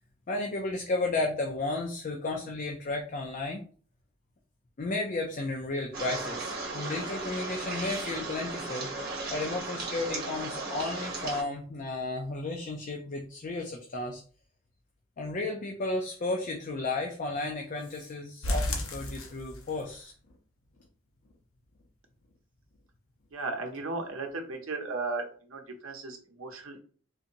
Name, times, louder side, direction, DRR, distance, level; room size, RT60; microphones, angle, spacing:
voice 1, 0.3-3.6 4.8-8.9 9.3-14.2 15.2-20.1, left 2 dB, 40° left, 1 dB, 0.4 m, -33 dB
sound 1, 5.9-11.4, right 3 dB, 50° right, 1.1 m, -36 dB
sound 2, 18.4-20.0 20.3-20.4 20.8-20.9 21.3-21.4, left 1 dB, 80° left, 0.7 m, -32 dB
voice 2, 23.3-26.8, right 3 dB, 80° right, 3 dB, 0.7 m, -36 dB
3.7 x 2.8 x 2.6 m, 0.42 s
head